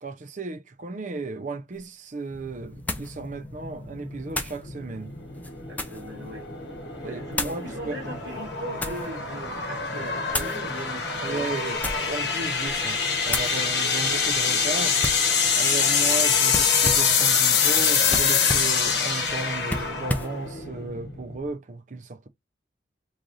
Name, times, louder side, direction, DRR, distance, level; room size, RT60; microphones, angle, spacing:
voice 1, 0.0-5.1 7.0-8.2 11.2-15.0 15.5-22.3, right 3 dB, 45° right, 0.6 m, -35 dB
sound 1, 1.7-1.8 2.9-3.2 4.3-4.6 5.3-6.1 7.3-7.6 8.4-9.1 10.3-10.6 11.7-12.2 12.6-12.9 13.3-13.6 15.0-15.3 16.5-17.2 18.1-18.8 19.7-20.4, left 1 dB, 10° left, 0.5 m, -31 dB
sound 2, 2.4-21.5, left 6 dB, 75° left, 1.0 m, -25 dB
voice 2, 5.7-6.5 7.0-11.8, right 1 dB, 80° right, 1.5 m, -39 dB
3.1 x 2.5 x 3.9 m
head